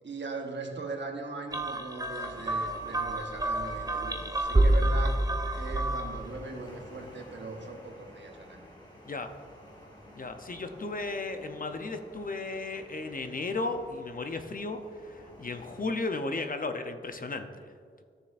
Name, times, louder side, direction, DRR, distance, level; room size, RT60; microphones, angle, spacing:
voice 1, 0.0-5.3 5.5-8.7, right 3 dB, 65° right, 2 dB, 1.1 m, -40 dB
sound 1, 1.5-6.3, right 1 dB, 20° right, 0.5 m, -28 dB
sound 2, 2.2-15.9, left 1 dB, 25° left, 1.9 m, -52 dB
voice 2, 10.1-17.5, left 3 dB, 45° left, 7 dB, 0.6 m, -35 dB
13.0 x 6.6 x 2.5 m, 2.1 s
wide cardioid pair, 100°, 20 cm